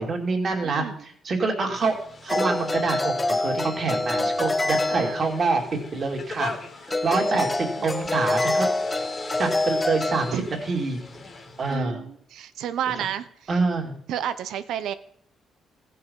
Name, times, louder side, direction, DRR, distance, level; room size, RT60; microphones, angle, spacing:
voice 1, 0.0-2.0 2.2-5.6 5.9-6.5 7.0-8.7 9.4-10.3 10.7-11.0 11.6-12.0 13.5-13.9, right 3 dB, 45° right, 2 dB, 2.7 m, -26 dB
voice 2, 0.6-1.1 4.9-5.2 7.3-7.4 10.3-10.5 11.7-13.5 14.1-14.9, right 10 dB, 80° right, 13 dB, 0.8 m, -31 dB
sound 1, 1.7-11.8, left 3 dB, 35° left, 2.4 m, -41 dB
sound 2, 2.3-5.7 6.9-10.3, left 2 dB, 20° left, 0.6 m, -26 dB
15.5 x 5.8 x 5.5 m, 0.65 s
cardioid pair, 90°, 0 cm